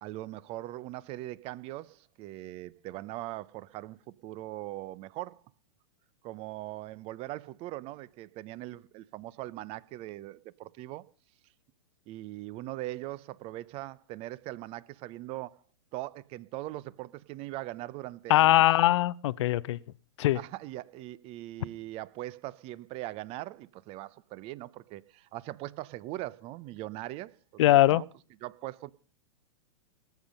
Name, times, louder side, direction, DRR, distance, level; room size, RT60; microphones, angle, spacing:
voice 1, 0.0-5.4 6.2-11.1 12.1-15.6 15.9-18.7 20.3-27.3 27.7-28.0 28.4-28.9, right 16 dB, 35° right, 0.7 m, -40 dB
voice 2, 18.3-19.8 20.2-20.4 27.6-28.0, left 15 dB, 60° left, 0.6 m, -21 dB
19.0 x 8.6 x 5.3 m
hypercardioid pair, 110°, 17 cm